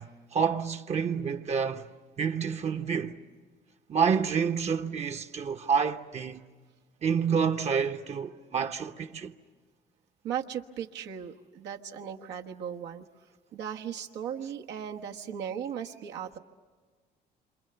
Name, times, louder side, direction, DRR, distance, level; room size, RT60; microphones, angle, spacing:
voice 1, 0.0-1.9 2.2-3.2 3.9-6.4 7.0-9.3, right 6 dB, 40° right, 0.9 m, -28 dB
voice 2, 10.2-13.0 13.5-16.4, right 8 dB, 85° right, 1.3 m, -37 dB
28.0 x 26.5 x 6.9 m
cardioid pair, 125°, 18 cm